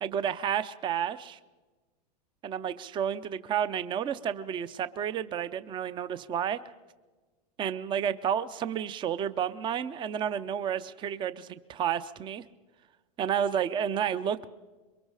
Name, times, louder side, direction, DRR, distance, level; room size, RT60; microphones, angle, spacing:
voice 1, 0.0-1.4 2.4-6.6 7.6-12.4 13.2-14.5, right 8 dB, 25° right, 15 dB, 0.6 m, -31 dB
27.0 x 23.0 x 4.8 m, 1.3 s
supercardioid pair, 140°, 21 cm